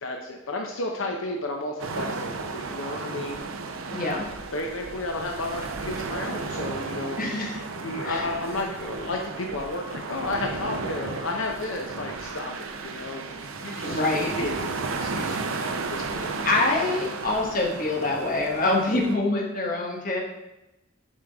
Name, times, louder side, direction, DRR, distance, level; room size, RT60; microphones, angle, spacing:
voice 1, 0.0-3.4 4.5-7.2 7.8-16.3, left 2 dB, 80° left, 2 dB, 0.7 m, -33 dB
sound 1, 1.8-19.1, right 4 dB, 85° right, 0.6 m, -34 dB
voice 2, 3.9-4.3 7.2-8.3 8.5-8.6 13.8-14.3 15.4-15.5 16.4-20.2, left 2 dB, 45° left, -1 dB, 1.3 m, -26 dB
7.2 x 5.1 x 3.5 m, 0.94 s
head